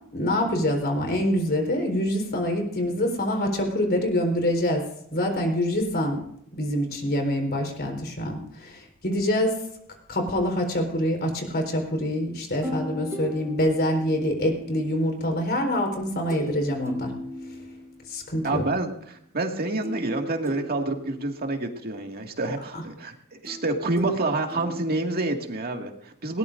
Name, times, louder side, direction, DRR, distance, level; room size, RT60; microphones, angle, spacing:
voice 1, 0.1-4.8 5.1-6.2 6.6-9.6 10.1-17.1 18.1-18.6 22.7-22.8, left 1 dB, 50° left, 3 dB, 4.3 m, -25 dB
sound 1, 12.6-14.9 16.3-16.6 16.9-18.1 19.8-21.5 23.5-25.7, right 1 dB, 15° right, 2.9 m, -37 dB
voice 2, 18.4-26.4, right 2 dB, 45° right, 3 dB, 2.1 m, -28 dB
20.0 x 19.0 x 2.6 m, 0.72 s
head